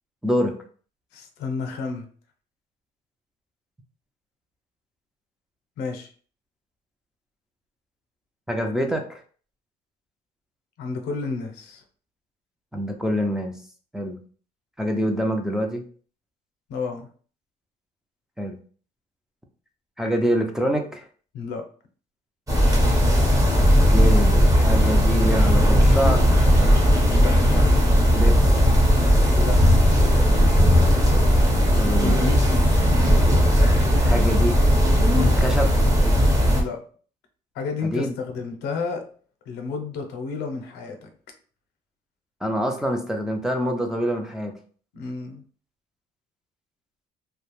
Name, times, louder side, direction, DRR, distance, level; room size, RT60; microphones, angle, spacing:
voice 1, 0.2-0.6 8.5-9.2 12.7-13.5 13.9-14.2 14.8-15.8 18.4-18.6 20.0-21.0 23.9-26.3 28.1-28.4 31.5-32.3 33.9-34.6 35.3-35.7 37.8-38.1 42.4-44.5, equal, 5° right, 2 dB, 0.4 m, -26 dB
voice 2, 1.1-2.1 5.8-6.1 10.8-11.8 16.7-17.1 21.3-21.6 27.0-27.3 29.3-29.8 36.5-36.8 37.5-39.0 39.5-41.1 44.9-45.4, left 4 dB, 85° left, 5 dB, 0.6 m, -31 dB
sound 1, 22.5-36.6, equal, 20° right, 0.8 m, -17 dB
2.3 x 2.1 x 3.0 m, 0.43 s
cardioid pair, 110°, 17 cm